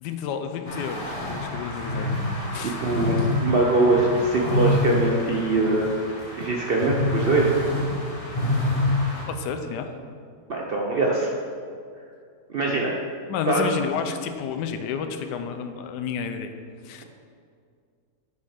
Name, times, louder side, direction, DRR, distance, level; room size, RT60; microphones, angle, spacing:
voice 1, 0.0-2.1 2.5-2.8 9.3-9.9 13.3-16.5 16.8-17.0, left 6 dB, 80° left, 7 dB, 1.2 m, -30 dB
sound 1, 0.6-9.2, left 1 dB, 25° left, 0.9 m, -27 dB
voice 2, 2.6-5.9 6.4-7.8 10.5-11.3 12.5-12.9 13.5-13.7, right 2 dB, 60° right, -1 dB, 0.6 m, -22 dB
6.3 x 5.6 x 4.9 m, 2.2 s
omnidirectional pair, 1.8 m